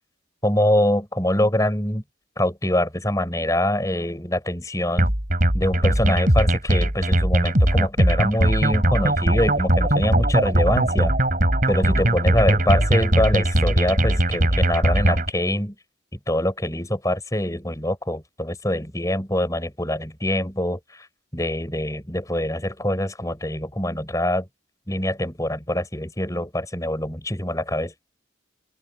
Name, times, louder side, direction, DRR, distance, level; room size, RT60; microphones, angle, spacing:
voice 1, 0.4-2.0 2.4-5.1 5.5-11.1 11.7-15.7 16.3-21.1 21.3-24.5 24.9-27.9, left 1 dB, 15° left, 5.9 m, -24 dB
sound 1, 5.0-15.3, right 1 dB, 45° right, 4.6 m, -20 dB
open air
head